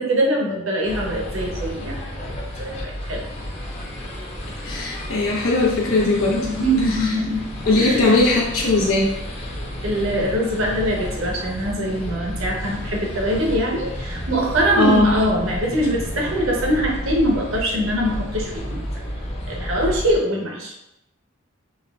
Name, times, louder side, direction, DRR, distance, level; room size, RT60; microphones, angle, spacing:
voice 1, 0.0-2.3 2.6-3.3 6.4-7.5 7.8-8.1 9.8-18.8 19.5-20.7, equal, 70° right, -1 dB, 0.8 m, -23 dB
sound 1, 0.8-20.2, equal, 30° left, 0.8 m, -31 dB
voice 2, 4.6-6.5 6.9-7.1 7.6-9.1 14.7-15.2, left 2 dB, 85° left, -4 dB, 1.0 m, -19 dB
5.4 x 2.4 x 2.3 m, 0.88 s
head